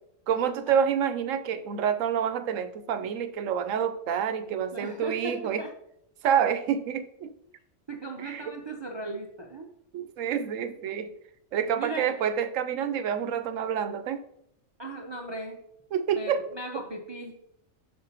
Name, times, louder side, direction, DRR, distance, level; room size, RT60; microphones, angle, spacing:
voice 1, 0.3-5.6 6.2-7.3 8.2-8.5 9.9-11.1 11.5-14.2 15.9-16.4, right 8 dB, 75° right, 10 dB, 1.0 m, -28 dB
voice 2, 4.7-5.7 7.9-9.7 11.7-12.1 14.8-15.6 16.1-17.3, right 2 dB, 35° right, 2 dB, 0.4 m, -37 dB
7.9 x 6.5 x 2.8 m, 0.74 s
omnidirectional pair, 1.4 m